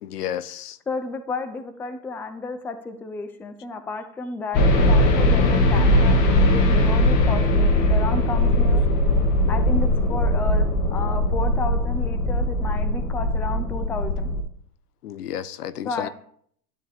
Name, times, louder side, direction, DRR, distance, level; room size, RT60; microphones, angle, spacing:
voice 1, 0.0-0.8 15.0-16.1, left 10 dB, 65° left, 1.0 m, -32 dB
voice 2, 0.9-8.8 9.5-14.3 15.8-16.1, left 3 dB, 5° left, 0.5 m, -32 dB
sound 1, 4.5-14.4, left 1 dB, 35° left, 2.2 m, -20 dB
12.5 x 11.0 x 3.5 m
hypercardioid pair, 130°, 49 cm